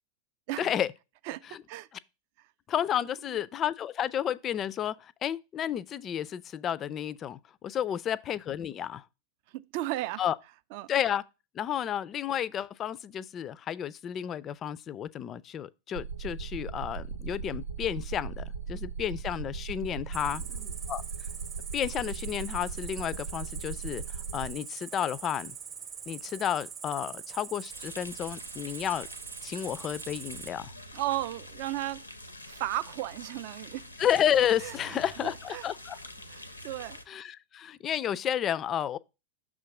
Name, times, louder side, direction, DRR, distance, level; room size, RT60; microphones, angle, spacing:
voice 1, 0.6-0.9 2.7-9.0 10.2-10.4 10.9-11.2 11.5-20.4 20.9-21.0 21.7-25.5 26.1-29.1 29.4-30.7 34.0-36.0 37.1-39.0, left 10 dB, 30° left, 0.3 m, -31 dB
voice 2, 1.3-1.9 9.5-10.2 10.7-10.9 20.6-20.7 30.9-32.0 32.5-33.9 34.6-35.7 36.3-37.0, right 16 dB, 45° right, 0.3 m, -35 dB
sound 1, 15.9-24.6, right 6 dB, 85° right, 0.7 m, -38 dB
Cricket, 20.1-30.5, right 7 dB, 30° right, 0.7 m, -43 dB
sound 2, 27.7-37.0, left 1 dB, 85° left, 0.6 m, -46 dB
6.2 x 3.7 x 5.8 m
figure-of-eight pair, 90°, 0 cm